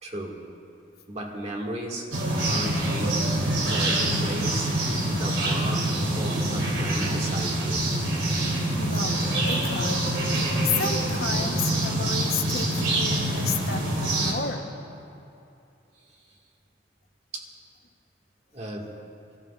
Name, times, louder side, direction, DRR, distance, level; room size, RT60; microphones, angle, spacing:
voice 1, 0.0-0.4 1.1-2.1 2.4-4.7 5.1-7.9 17.3-17.5 18.5-18.9, right 1 dB, 35° right, 0 dB, 2.0 m, -35 dB
sound 1, 2.1-14.3, right 1 dB, 75° right, 3.2 m, -25 dB
voice 2, 8.8-10.0 10.4-14.7, left 5 dB, 55° left, 3 dB, 1.0 m, -32 dB
27.5 x 14.0 x 2.5 m, 2.7 s
head